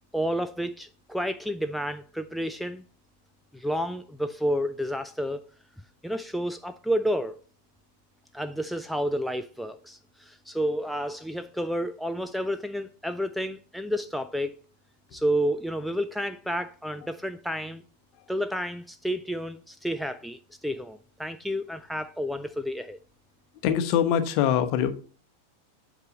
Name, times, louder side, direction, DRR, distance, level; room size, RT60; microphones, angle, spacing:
voice 1, 0.1-2.8 3.5-5.4 6.0-7.3 8.3-14.6 15.1-17.8 18.3-23.0, equal, ahead, 0.4 m, -30 dB
voice 2, 23.6-24.9, left 9 dB, 45° left, 0.9 m, -23 dB
8.2 x 4.9 x 4.0 m
figure-of-eight pair, 90°, 0 cm